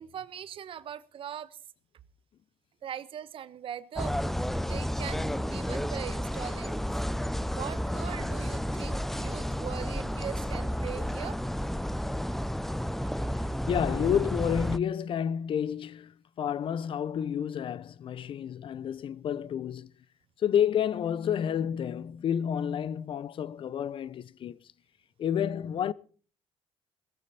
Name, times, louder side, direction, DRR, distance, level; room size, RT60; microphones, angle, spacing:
voice 1, 0.0-1.6 2.8-4.3 4.6-6.8 7.4-11.4, right 9 dB, 55° right, 1.2 m, -40 dB
sound 1, 3.9-14.8, equal, ahead, 0.7 m, -31 dB
voice 2, 13.7-19.9 20.4-24.6 25.2-25.9, left 9 dB, 55° left, 0.8 m, -30 dB
17.0 x 15.0 x 4.3 m
supercardioid pair, 75°, 11 cm